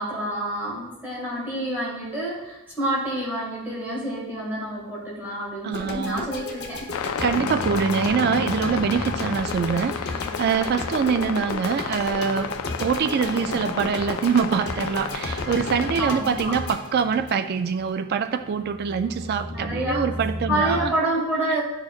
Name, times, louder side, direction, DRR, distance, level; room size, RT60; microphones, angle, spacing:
voice 1, 0.0-6.9 16.0-16.6 19.5-20.0 20.5-21.6, right 1 dB, 10° right, -6 dB, 1.9 m, -28 dB
voice 2, 5.6-6.3 7.2-12.5 12.8-20.9 21.5-21.6, right 6 dB, 45° right, 9 dB, 0.3 m, -24 dB
sound 1, 5.7-17.9, left 2 dB, 50° left, 0.7 m, -34 dB
sound 2, 6.9-16.1, left 8 dB, 65° left, 0.3 m, -32 dB
sound 3, 7.2-20.9, left 1 dB, 25° right, 2.2 m, -37 dB
10.5 x 4.5 x 2.4 m, 0.98 s
head